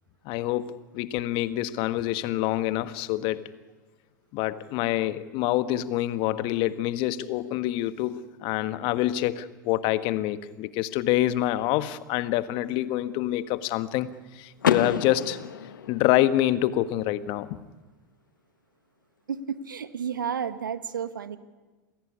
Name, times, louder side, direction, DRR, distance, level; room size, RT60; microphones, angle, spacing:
voice 1, 0.3-3.5 4.3-14.1 14.3-15.4 15.9-17.6, left 14 dB, 55° left, 1.6 m, -26 dB
Car / Door, 14.6-16.6, left 8 dB, 80° left, 1.4 m, -29 dB
voice 2, 19.3-21.4, right 7 dB, 85° right, 1.4 m, -32 dB
28.0 x 20.5 x 9.9 m
hypercardioid pair, 85°, 10 cm